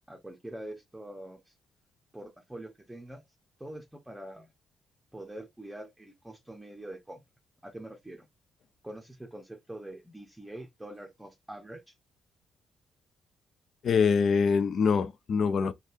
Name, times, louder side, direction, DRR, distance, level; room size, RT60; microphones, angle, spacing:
voice 1, 0.1-1.5 2.1-3.2 3.6-4.5 5.1-7.2 7.6-8.3 8.8-11.9, right 1 dB, 10° right, 0.7 m, -44 dB
voice 2, 13.8-15.7, left 5 dB, 55° left, 0.3 m, -24 dB
3.2 x 2.3 x 2.6 m
figure-of-eight pair, 40°, 0 cm